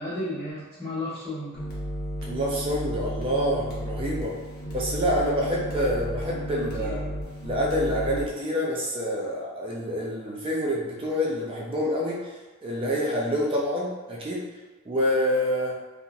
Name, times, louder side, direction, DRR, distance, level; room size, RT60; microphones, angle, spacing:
voice 1, 0.0-1.6 6.3-6.9, left 1 dB, 15° left, -19 dB, 1.3 m, -34 dB
sound 1, 1.5-8.3, equal, 45° left, 0.8 m, -33 dB
voice 2, 2.3-4.4 4.7-7.1 7.4-12.3 12.6-14.4 14.9-15.7, equal, 25° right, -4 dB, 0.4 m, -27 dB
2.8 x 2.5 x 2.5 m, 1.2 s
head